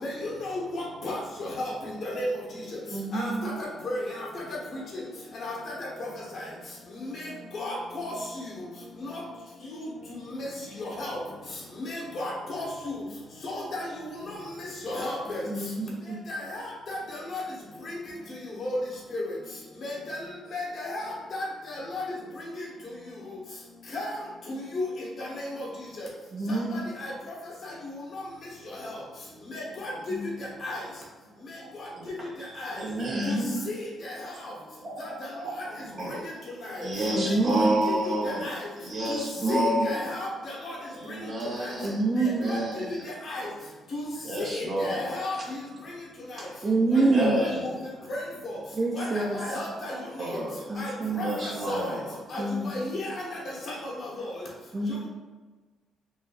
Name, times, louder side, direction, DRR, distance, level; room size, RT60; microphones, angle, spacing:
voice 1, 0.0-1.5 2.2-2.3 3.1-4.0 5.4-5.5 7.0-7.3 7.5-8.1 9.0-9.2 10.4-10.5 10.8-11.2 11.8-12.7 13.4-13.9 14.8-15.4 16.3-16.4 16.9-17.0 17.3-17.4 18.6-18.8 19.1-19.2 19.8-20.2 20.5-21.0 21.3-21.4 21.9-22.0 23.9-24.1 24.5-24.9 25.2-25.6 26.5-26.6 29.5-29.9 30.6-30.8 32.6-32.7 33.3-33.4 33.7-33.8 37.2-37.3 38.4-38.5 39.1-39.2 39.5-39.6 39.8-40.8 41.6-41.7 42.2-42.6 43.3-43.4 43.9-44.0 44.5-45.4 47.5-47.7 48.1-48.2 48.9-49.9 50.8-50.9 51.2-51.8 52.3-52.4 52.7-53.1 53.8-53.9, left 2 dB, 60° left, -3 dB, 1.1 m, -33 dB
voice 2, 2.9-3.6 15.5-16.2 26.3-26.9 30.1-30.3 33.1-33.7 37.1-37.8 39.4-39.9 41.8-42.5 46.6-47.4 48.7-49.4 50.7-51.4 52.4-52.8 54.7-55.1, right 2 dB, 30° right, -1 dB, 0.4 m, -27 dB
voice 3, 31.6-33.5 34.8-36.2 36.8-38.5 38.8-40.2 40.9-43.0 44.2-45.4 46.9-47.8 49.4-49.5 49.8-52.2, right 1 dB, 45° right, -4 dB, 1.2 m, -31 dB
3.8 x 2.6 x 2.5 m, 1.3 s
cardioid pair, 90°, 0 cm